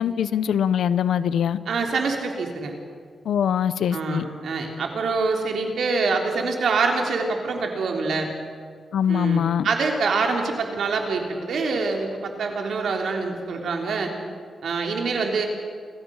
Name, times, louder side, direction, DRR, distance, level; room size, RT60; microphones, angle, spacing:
voice 1, 0.0-1.6 3.2-4.2 8.9-9.7, left 8 dB, 85° left, 15 dB, 0.8 m, -22 dB
voice 2, 1.7-2.8 3.9-8.3 9.1-14.1 14.6-15.5, right 4 dB, 75° right, 2 dB, 3.4 m, -25 dB
29.5 x 14.0 x 6.4 m, 2.1 s
cardioid pair, 105°, 0 cm